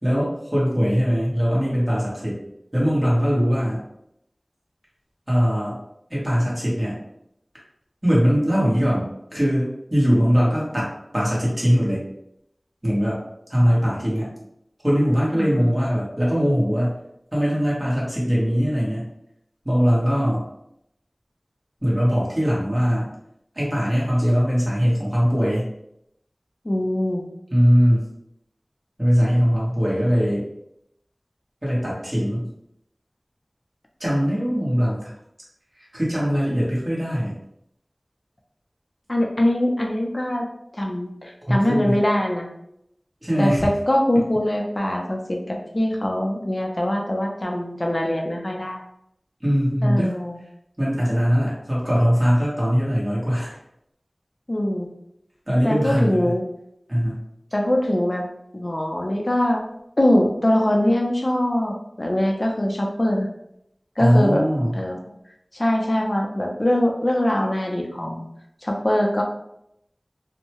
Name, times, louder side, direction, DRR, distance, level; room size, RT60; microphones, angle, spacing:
voice 1, 0.0-2.4 2.7-3.8 5.3-5.8 6.1-7.0 8.0-12.0 12.8-13.2 13.5-14.3 14.8-17.0 17.3-19.1 19.6-20.5 21.8-23.1 23.5-25.7 27.5-28.0 29.0-30.4 31.6-32.5 34.0-35.1 35.9-37.4 41.5-42.0 43.2-43.7 49.4-50.1 50.8-53.6 55.5-56.4 56.9-57.2 64.0-64.8, equal, 35° right, -6 dB, 1.2 m, -21 dB
voice 2, 15.4-15.7 26.6-27.2 39.1-40.5 40.7-42.5 43.4-48.8 49.8-50.4 54.5-54.9 55.6-56.4 57.5-58.3 58.5-59.6 60.0-63.3 64.0-64.5 64.7-65.0 65.5-68.3 68.6-69.2, left 1 dB, 45° left, 1 dB, 0.5 m, -22 dB
2.7 x 2.1 x 2.9 m, 0.78 s
wide cardioid pair, 40°, 0 cm